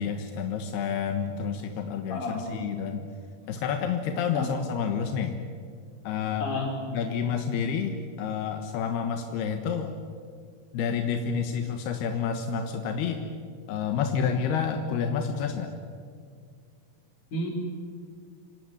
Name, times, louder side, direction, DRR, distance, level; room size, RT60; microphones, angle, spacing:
voice 1, 0.0-3.1 3.5-5.3 6.0-6.5 6.9-9.9 10.7-13.2 13.7-15.7, left 6 dB, 85° left, 5 dB, 3.4 m, -29 dB
voice 2, 2.1-2.4 4.3-4.5 6.4-6.7 14.3-14.5 17.3-17.5, left 2 dB, 55° left, 1 dB, 6.0 m, -31 dB
26.0 x 19.0 x 9.8 m, 2.1 s
omnidirectional pair, 4.5 m